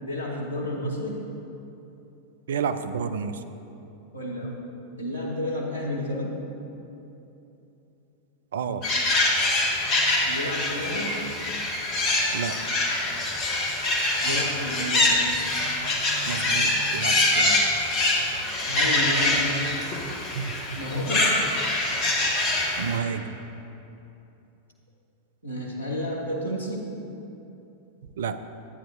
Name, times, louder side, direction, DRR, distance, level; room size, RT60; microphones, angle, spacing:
voice 1, 0.0-1.2 4.1-4.5 5.0-6.4 10.2-11.2 14.2-15.1 18.6-19.7 20.7-21.4 25.4-26.9, left 1 dB, 85° right, -3 dB, 1.2 m, -31 dB
voice 2, 2.5-3.4 4.4-4.5 8.5-8.8 12.3-12.5 14.3-14.4 16.3-17.7 20.3-20.8 22.8-23.3 28.2-28.4, right 6 dB, 60° right, 10 dB, 0.4 m, -30 dB
sound 1, 8.8-23.0, left 2 dB, 35° left, 1.6 m, -24 dB
12.5 x 8.9 x 2.6 m, 2.9 s
figure-of-eight pair, 90°, 0 cm